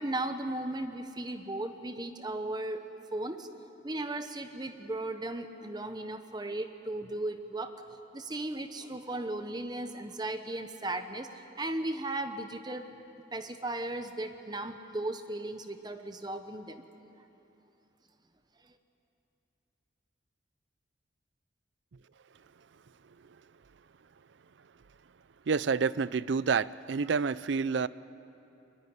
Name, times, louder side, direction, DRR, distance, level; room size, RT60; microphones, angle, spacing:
voice 1, 0.0-2.8 3.1-3.5 3.8-7.7 8.1-12.8 13.3-16.8 18.6-18.7, right 2 dB, 20° right, 1.0 m, -36 dB
voice 2, 25.5-27.9, right 5 dB, 65° right, 0.5 m, -28 dB
23.5 x 21.5 x 9.5 m
head